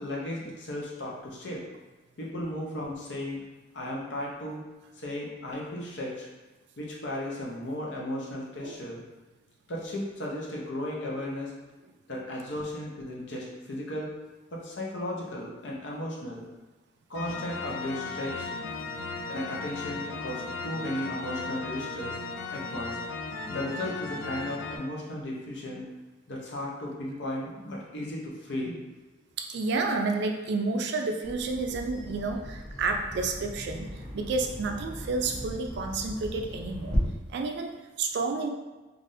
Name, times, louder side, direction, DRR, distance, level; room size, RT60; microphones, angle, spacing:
voice 1, 0.0-1.6 2.2-3.4 3.7-4.6 5.0-6.3 6.8-9.0 9.7-11.5 12.1-14.1 14.5-16.4 17.1-18.5 19.3-22.2 22.5-23.0 23.5-25.8 26.3-28.8, left 1 dB, 65° left, -3 dB, 0.7 m, -35 dB
sound 1, 17.1-24.8, left 3 dB, 90° left, 0.4 m, -36 dB
voice 2, 29.4-37.0 37.3-38.5, right 3 dB, 60° right, 4 dB, 0.3 m, -30 dB
Bird vocalization bird call bird song, 31.2-37.0, equal, 30° left, 1.1 m, -41 dB
3.4 x 2.5 x 2.6 m, 1.2 s
head